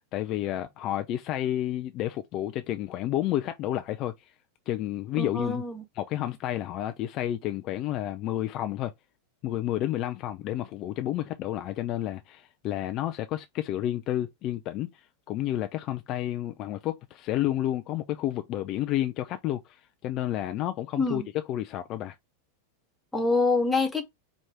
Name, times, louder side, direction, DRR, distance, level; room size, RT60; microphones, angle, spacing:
voice 1, 0.0-4.3 4.7-5.6 6.0-8.9 9.4-21.2 21.5-22.2, left 13 dB, 35° left, 0.4 m, -30 dB
voice 2, 5.2-5.8 21.0-21.3 23.1-24.1, left 3 dB, 5° left, 1.2 m, -26 dB
4.7 x 2.5 x 3.5 m
figure-of-eight pair, 90°, 0 cm